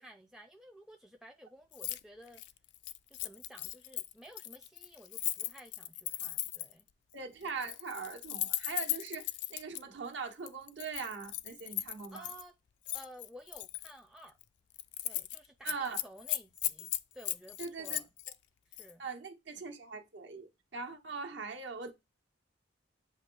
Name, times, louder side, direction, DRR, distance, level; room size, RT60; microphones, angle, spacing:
voice 1, 0.0-2.4 3.2-6.9 7.4-7.6 12.1-12.5 12.9-14.4 15.0-18.1 18.7-19.1, equal, ahead, 0.3 m, -54 dB
Keys jangling, 1.7-2.0 2.3-6.8 7.5-9.8 10.5-12.4 12.9-13.9 14.3-14.4 14.7-15.4 15.7-18.4 18.7-18.9, left 15 dB, 65° left, 0.4 m, -37 dB
voice 2, 7.1-12.3 15.6-16.0 17.6-18.0 19.0-21.9, right 5 dB, 70° right, 1.1 m, -41 dB
7.9 x 2.7 x 4.4 m
head